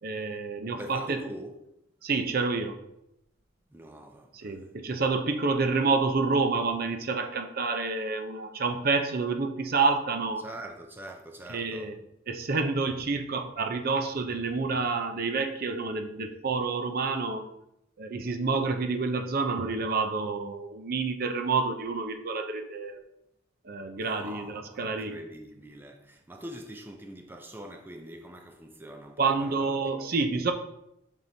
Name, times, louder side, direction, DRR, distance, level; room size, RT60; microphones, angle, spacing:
voice 1, 0.0-1.2 2.0-2.8 4.3-10.4 11.5-12.0 12.3-17.5 18.0-23.0 23.6-25.2 29.2-30.5, right 4 dB, 50° right, 0.6 m, -28 dB
voice 2, 0.7-1.6 3.7-4.7 10.4-11.9 24.0-30.1, right 1 dB, 10° right, 0.5 m, -44 dB
7.5 x 5.4 x 2.7 m
head